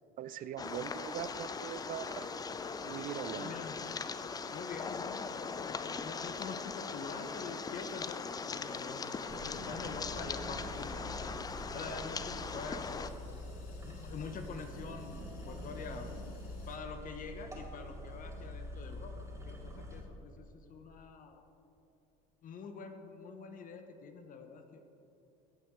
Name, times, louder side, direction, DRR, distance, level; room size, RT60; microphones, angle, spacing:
voice 1, 0.2-2.3 2.8-3.5, right 10 dB, 45° right, 15 dB, 0.4 m, -41 dB
sound 1, 0.6-16.8, left 4 dB, 80° left, 1.4 m, -60 dB
sound 2, 0.6-13.1, left 5 dB, 20° left, 0.4 m, -40 dB
voice 2, 3.3-3.8 4.5-8.2 8.5-11.3 11.7-13.4 13.8-15.2 15.4-16.1 16.7-19.1 19.4-21.4 22.4-24.8, left 5 dB, 45° left, 6 dB, 0.9 m, -46 dB
sound 3, 9.3-20.0, left 1 dB, 15° right, 2.3 m, -45 dB
15.0 x 7.0 x 3.7 m, 2.8 s
supercardioid pair, 90°, 19 cm